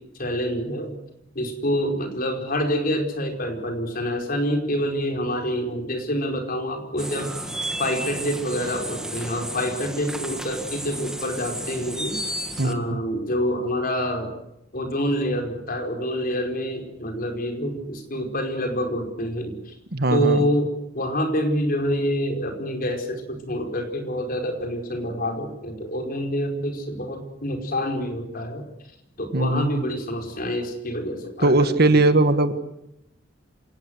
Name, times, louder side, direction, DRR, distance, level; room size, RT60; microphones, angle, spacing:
voice 1, 0.1-0.9 1.3-7.3 7.8-12.2 12.6-14.3 14.7-19.8 20.1-20.7 20.9-28.6 29.2-32.0, equal, 50° left, 3 dB, 4.9 m, -27 dB
sound 1, 7.0-12.7, right 1 dB, 5° right, 1.8 m, -33 dB
voice 2, 19.9-20.4 29.3-29.8 31.4-32.5, right 2 dB, 55° right, 10 dB, 1.7 m, -19 dB
27.0 x 18.0 x 8.0 m, 0.83 s
head